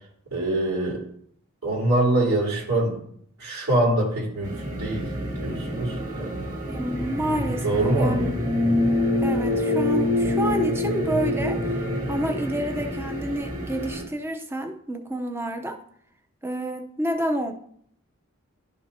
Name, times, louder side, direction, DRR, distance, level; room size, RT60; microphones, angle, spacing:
voice 1, 0.3-1.0 1.6-3.0 3.4-5.1 5.4-6.4 7.6-8.3, right 1 dB, 85° right, -4 dB, 3.2 m, -24 dB
sound 1, 4.4-14.0, left 1 dB, 40° right, 2.7 m, -26 dB
voice 2, 6.7-8.4 9.2-15.8 16.4-17.5, right 1 dB, 10° right, 5 dB, 0.7 m, -29 dB
11.5 x 5.4 x 2.8 m, 0.65 s
head